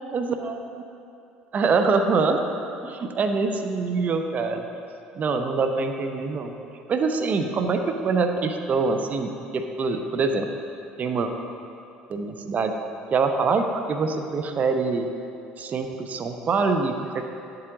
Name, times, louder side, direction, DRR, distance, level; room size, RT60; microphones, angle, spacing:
voice 1, 0.1-0.6 1.5-2.4 2.8-4.7 5.1-6.5 6.9-10.5 11.0-11.3 12.1-12.7 13.1-15.1 15.6-17.2, right 4 dB, 45° right, 6 dB, 0.7 m, -24 dB
9.6 x 7.8 x 3.8 m, 2.7 s
hypercardioid pair, 65°, 4 cm